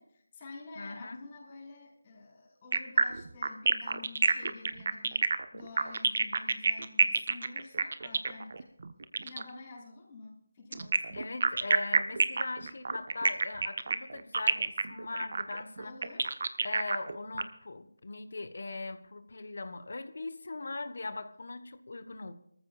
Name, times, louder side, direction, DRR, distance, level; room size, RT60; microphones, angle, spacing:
voice 1, 0.0-5.3 5.5-8.7 9.2-11.2 15.8-16.3, left 3 dB, 30° left, -4 dB, 5.1 m, -49 dB
voice 2, 0.7-1.2 11.1-15.9 16.6-22.3, left 3 dB, 60° left, 11 dB, 1.2 m, -40 dB
sound 1, 2.7-9.5 10.7-17.4, right 4 dB, 50° right, 1.1 m, -28 dB
23.5 x 14.5 x 2.5 m, 0.71 s
figure-of-eight pair, 160°, 0 cm